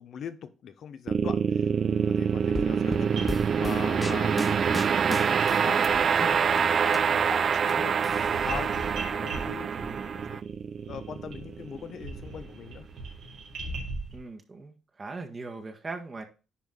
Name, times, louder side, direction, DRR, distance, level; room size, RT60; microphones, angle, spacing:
voice 1, 0.0-10.4 10.8-12.9, left 8 dB, 65° left, 1.0 m, -42 dB
sound 1, 1.1-12.3, right 6 dB, 50° right, 0.4 m, -26 dB
sound 2, 2.5-5.9 6.2-7.7 8.0-8.9, left 2 dB, 15° left, 0.6 m, -37 dB
sound 3, 3.2-4.1 5.4-5.6 5.8-6.9 7.2-14.2, right 2 dB, 80° right, 3.3 m, -40 dB
voice 2, 14.1-16.2, right 3 dB, 35° right, 1.5 m, -40 dB
10.0 x 4.7 x 3.8 m
cardioid pair, 90°, 0 cm